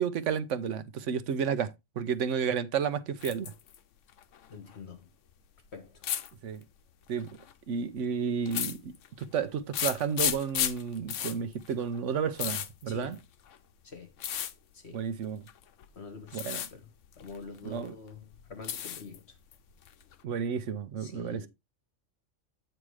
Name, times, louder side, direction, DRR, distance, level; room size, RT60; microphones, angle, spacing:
voice 1, 0.0-3.5 6.4-6.6 7.1-7.3 7.7-8.9 9.2-13.2 14.9-15.5 16.3-16.6 17.7-17.9 20.2-21.5, right 7 dB, 75° right, 1.0 m, -31 dB
sound 1, 3.2-3.8 4.1-4.8 6.0-6.3 7.2-7.5 8.5-9.2 9.7-13.6 14.2-14.5 15.5-15.9 16.3-16.7 17.0-17.9 18.2-19.2 19.5-20.2, left 10 dB, 75° left, 1.0 m, -34 dB
voice 2, 4.5-5.1 5.7-6.0 12.9-13.2 13.8-14.1 14.7-15.1 15.9-16.5 16.7-16.9 17.2-19.4 21.0-21.5, left 4 dB, 60° left, 1.5 m, -46 dB
8.7 x 3.2 x 4.7 m
omnidirectional pair, 1.3 m